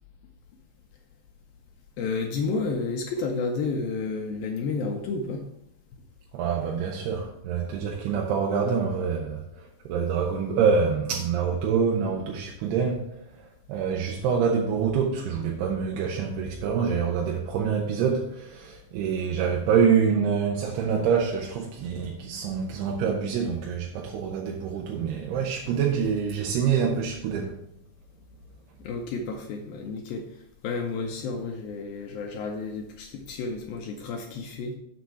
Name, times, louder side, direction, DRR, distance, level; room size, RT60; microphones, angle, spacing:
voice 1, 2.0-5.5 28.8-30.3 30.6-34.7, left 4 dB, 75° left, 3 dB, 2.2 m, -31 dB
voice 2, 6.3-13.0 13.7-27.6, right 6 dB, 80° right, -1 dB, 2.8 m, -26 dB
6.9 x 6.4 x 4.6 m, 0.77 s
omnidirectional pair, 4.8 m